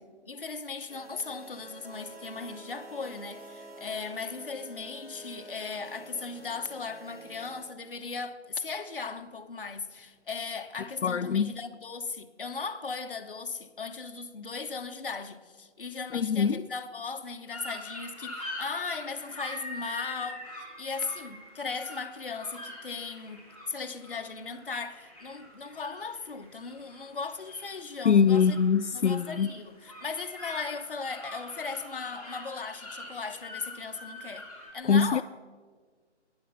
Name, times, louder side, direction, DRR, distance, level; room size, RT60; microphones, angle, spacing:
voice 1, 0.3-20.4 20.8-28.6 28.9-35.2, left 4 dB, 50° left, 1.1 m, -37 dB
sound 1, 0.9-7.6, right 2 dB, 55° right, 3.6 m, -48 dB
voice 2, 11.0-11.5 16.1-16.6 28.1-29.5 34.9-35.2, left 6 dB, 75° left, 0.5 m, -23 dB
sound 2, 17.5-34.7, left 1 dB, 5° right, 3.1 m, -44 dB
15.0 x 10.0 x 6.9 m
figure-of-eight pair, 160°, 35 cm